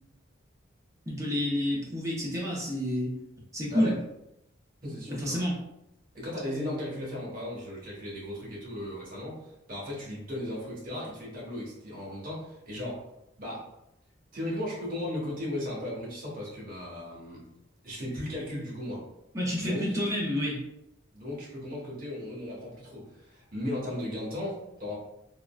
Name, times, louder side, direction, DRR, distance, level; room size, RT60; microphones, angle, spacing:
voice 1, 1.1-3.1 3.5-3.9 5.1-5.6 19.3-20.6, equal, 15° right, -4 dB, 0.5 m, -29 dB
voice 2, 4.8-5.4 6.1-9.4 9.7-13.0 13.4-13.7 14.3-17.4 17.8-19.0 19.6-19.8 21.1-24.9, left 1 dB, 45° right, -4 dB, 1.1 m, -36 dB
3.6 x 2.1 x 2.2 m, 0.85 s
head